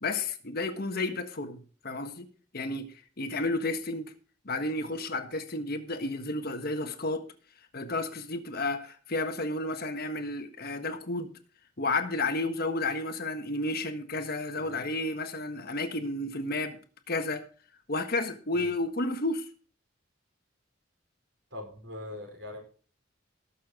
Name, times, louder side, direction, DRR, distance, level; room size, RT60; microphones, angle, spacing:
voice 1, 0.0-2.3 2.5-2.9 3.2-4.1 4.4-7.3 7.7-11.3 11.8-16.8 17.1-17.4 17.9-19.5, left 2 dB, 50° left, 1.5 m, -32 dB
voice 2, 21.5-22.6, left 1 dB, 65° right, 4.6 m, -42 dB
19.0 x 6.8 x 3.7 m
head